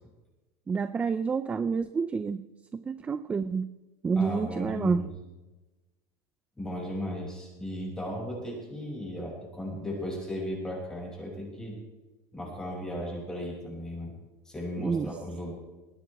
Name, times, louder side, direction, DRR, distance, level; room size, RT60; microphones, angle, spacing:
voice 1, 0.7-2.5 2.7-3.7 4.0-5.0 14.8-15.1, right 5 dB, 15° right, 12 dB, 0.4 m, -28 dB
voice 2, 4.2-5.1 6.6-11.8 12.3-14.1 14.4-15.5, left 1 dB, 5° left, -2 dB, 6.1 m, -36 dB
20.0 x 17.5 x 3.4 m, 1.1 s
supercardioid pair, 160°, 10 cm